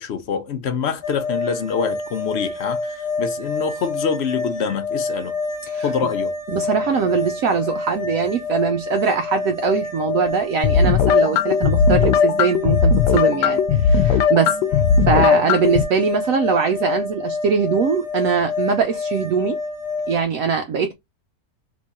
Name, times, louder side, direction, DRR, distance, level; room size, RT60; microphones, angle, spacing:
voice 1, 0.0-5.3 5.8-6.3, left 6 dB, 65° left, 0.6 m, -25 dB
sound 1, 1.0-20.2, left 3 dB, 25° left, 0.9 m, -27 dB
voice 2, 6.5-14.8 15.1-19.6 20.1-20.9, right 6 dB, 70° right, 0.9 m, -22 dB
sound 2, 10.6-15.8, left 6 dB, 85° left, 1.2 m, -18 dB
3.6 x 3.0 x 4.0 m
omnidirectional pair, 1.8 m